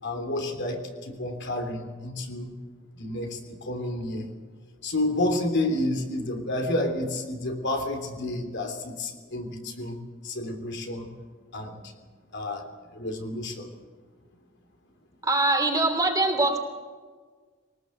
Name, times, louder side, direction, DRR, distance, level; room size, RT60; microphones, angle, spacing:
voice 1, 0.0-2.6 2.9-4.3 4.8-11.1 11.5-11.8 12.3-12.6 12.9-13.7, left 1 dB, 60° left, 4 dB, 3.4 m, -30 dB
voice 2, 15.2-16.6, right 2 dB, 20° right, 4 dB, 3.1 m, -23 dB
22.5 x 19.0 x 8.0 m, 1.5 s
head